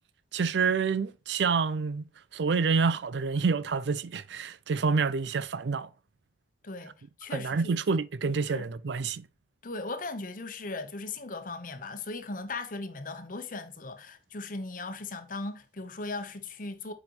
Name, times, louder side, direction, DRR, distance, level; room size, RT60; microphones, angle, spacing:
voice 1, 0.3-2.1 2.3-5.9 7.3-9.3, right 5 dB, 80° right, 0.5 m, -28 dB
voice 2, 7.2-7.8 8.5-8.7 9.6-16.9, left 3 dB, 50° left, 1.0 m, -38 dB
7.7 x 5.3 x 3.1 m
head